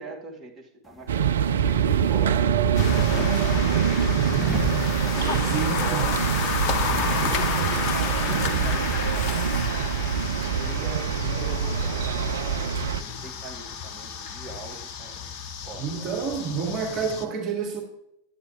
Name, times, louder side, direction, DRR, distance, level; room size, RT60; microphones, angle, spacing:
voice 1, 0.0-2.5 3.4-4.7 5.1-9.6 10.6-15.3 15.6-16.4, right 3 dB, 15° right, 2.2 m, -41 dB
sound 1, 0.8-11.9, left 2 dB, 5° left, 0.9 m, -38 dB
sound 2, 1.1-13.0, right 8 dB, 65° right, 0.4 m, -24 dB
sound 3, 2.7-17.2, left 6 dB, 40° left, 0.9 m, -32 dB
voice 2, 5.5-6.1 15.8-17.8, right 5 dB, 35° right, 1.9 m, -29 dB
9.7 x 9.4 x 3.6 m
figure-of-eight pair, 90°, 0 cm